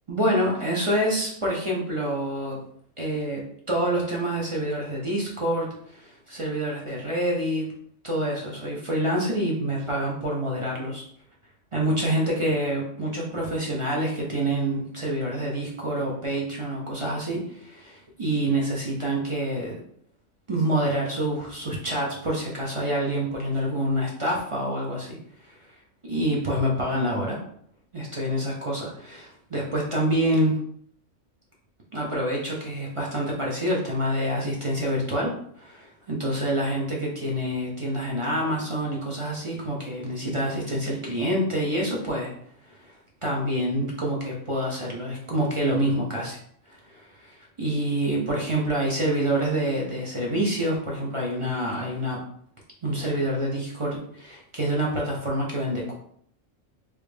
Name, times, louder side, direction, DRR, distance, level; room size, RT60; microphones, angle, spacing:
voice 1, 0.1-2.6 3.0-3.4 3.7-7.7 8.0-11.0 11.7-19.7 20.5-25.2 25.4-25.6 26.1-27.4 27.9-30.6 31.9-42.3 42.7-42.9 43.2-46.4 46.7-52.2 52.8-55.9, right 1 dB, 35° right, -3 dB, 0.5 m, -27 dB
3.3 x 2.6 x 3.2 m, 0.65 s
omnidirectional pair, 1.3 m